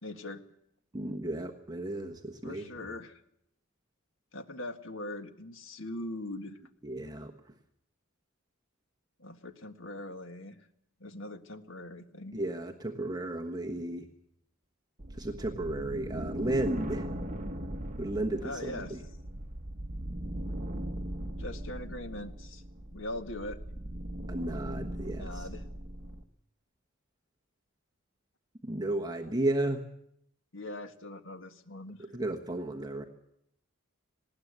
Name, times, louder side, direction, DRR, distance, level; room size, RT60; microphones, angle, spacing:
voice 1, 0.0-0.4 2.4-3.2 4.3-6.6 9.2-10.6 11.0-12.4 18.4-19.0 21.4-22.6 22.9-23.6 25.2-25.6 30.5-32.1, left 1 dB, 65° left, 7 dB, 1.7 m, -41 dB
voice 2, 0.9-2.7 6.8-7.3 12.3-14.1 15.2-17.1 18.0-19.0 24.3-25.5 28.6-29.8 32.1-33.0, right 1 dB, 20° right, 2 dB, 1.3 m, -33 dB
sound 1, 15.0-26.2, equal, 35° right, 1.2 m, -39 dB
19.5 x 17.5 x 8.2 m, 0.75 s
head